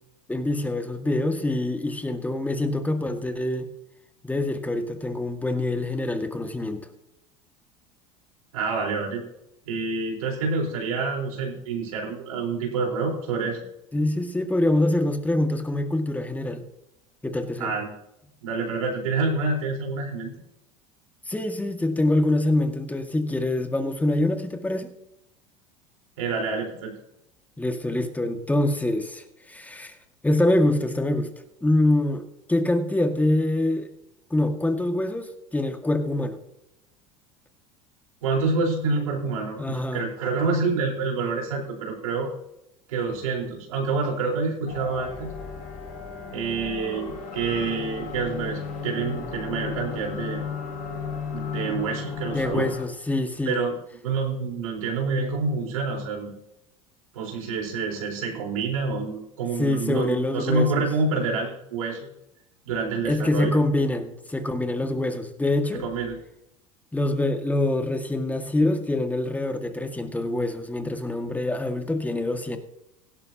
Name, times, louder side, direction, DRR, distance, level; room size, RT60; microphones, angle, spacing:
voice 1, 0.3-3.7 4.2-6.9 13.9-16.6 17.2-17.8 21.3-24.9 27.6-30.0 30.2-31.3 31.6-33.9 34.3-36.4 39.6-40.0 51.7-51.8 52.3-53.6 59.6-60.8 63.0-65.8 66.9-72.6, left 1 dB, 10° left, 6 dB, 1.9 m, -25 dB
voice 2, 8.5-9.2 9.7-13.6 17.6-17.9 18.4-20.3 26.2-26.9 38.2-42.3 42.9-45.3 46.3-50.4 51.3-52.7 53.5-53.8 54.0-56.3 57.1-62.1 62.7-63.6 65.7-66.2, right 4 dB, 80° right, -1 dB, 4.3 m, -27 dB
sound 1, 44.7-52.9, left 5 dB, 55° left, 5.2 m, -34 dB
17.0 x 11.5 x 2.9 m, 0.83 s
hypercardioid pair, 80°, 18 cm